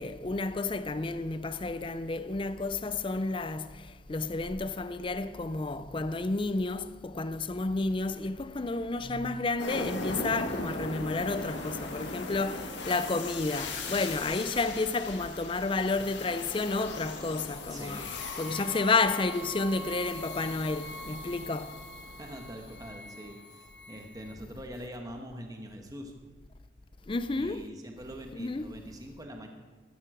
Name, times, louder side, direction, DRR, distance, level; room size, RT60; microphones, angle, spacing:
voice 1, 0.0-18.1 18.4-21.8 27.1-27.7 28.3-28.8, left 3 dB, 25° left, 0.4 m, -31 dB
sound 1, 9.6-24.3, left 2 dB, 65° left, 1.8 m, -39 dB
voice 2, 17.7-18.1 22.2-26.1 27.4-29.5, equal, 20° right, 1.2 m, -44 dB
13.5 x 12.0 x 4.9 m
head